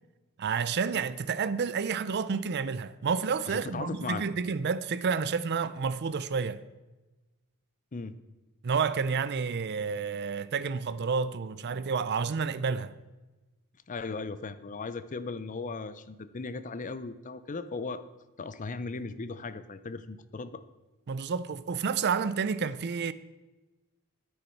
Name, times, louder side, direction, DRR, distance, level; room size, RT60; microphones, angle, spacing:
voice 1, 0.4-6.6 8.6-12.9 21.1-23.1, right 5 dB, 50° right, 0.5 m, -30 dB
voice 2, 3.5-4.2 7.9-8.2 13.9-18.0 18.4-20.6, left 4 dB, 35° left, 0.5 m, -37 dB
9.7 x 9.5 x 4.5 m
head